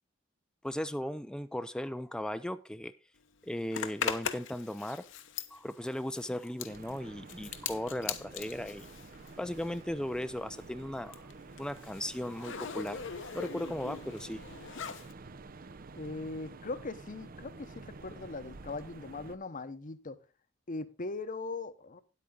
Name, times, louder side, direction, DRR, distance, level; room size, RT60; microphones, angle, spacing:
voice 1, 0.6-2.9 3.4-5.1 5.5-8.9 9.4-11.2 11.6-13.0 13.3-14.4, left 1 dB, 5° left, 11 dB, 0.4 m, -37 dB
Zipper (clothing), 3.7-9.9 10.2-15.1, left 7 dB, 65° left, 0.9 m, -40 dB
sound 1, 6.7-19.4, right 3 dB, 45° right, 0.6 m, -50 dB
voice 2, 15.9-20.2 20.7-22.0, left 3 dB, 40° left, 13 dB, 0.9 m, -40 dB
10.0 x 8.6 x 3.8 m, 0.31 s
head